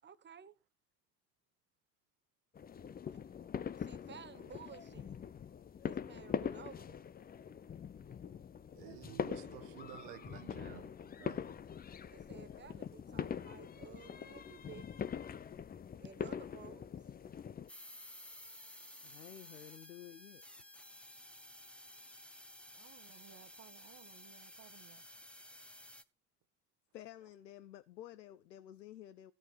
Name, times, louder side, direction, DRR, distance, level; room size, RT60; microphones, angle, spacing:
voice 1, 0.0-0.5 3.8-5.2 5.8-7.0 12.1-15.0 16.0-16.9, right 8 dB, 20° right, 1.1 m, -54 dB
sound 1, 2.5-17.7, left 7 dB, 20° left, 0.7 m, -43 dB
voice 2, 8.7-11.6, right 20 dB, 65° right, 0.8 m, -52 dB
sound 2, 17.7-26.0, left 1 dB, ahead, 1.0 m, -54 dB
voice 3, 19.0-20.9 26.9-29.3, left 12 dB, 85° left, 0.7 m, -52 dB
voice 4, 22.7-25.0, right 10 dB, 40° right, 1.3 m, -60 dB
15.0 x 7.5 x 4.6 m
hypercardioid pair, 80°, 49 cm